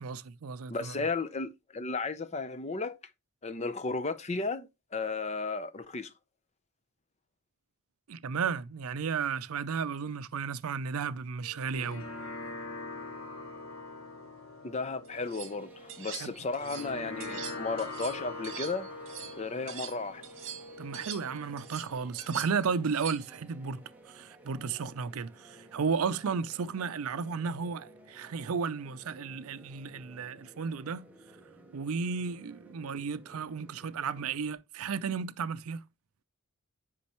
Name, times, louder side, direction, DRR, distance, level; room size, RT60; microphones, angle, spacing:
voice 1, 0.0-0.9 8.1-12.0 16.2-16.3 20.8-31.1 31.7-35.8, right 5 dB, 80° right, 0.5 m, -33 dB
voice 2, 0.7-3.0 3.4-6.1 14.6-18.9 19.4-20.2, left 3 dB, 30° left, 0.5 m, -34 dB
sound 1, 11.4-22.4, left 2 dB, 70° left, 1.4 m, -43 dB
sound 2, 15.0-15.5 15.9-16.9 17.2-20.0 20.2-23.4, right 8 dB, 60° right, 1.6 m, -44 dB
sound 3, 15.1-34.5, right 1 dB, 5° right, 1.1 m, -56 dB
8.5 x 5.3 x 3.0 m
head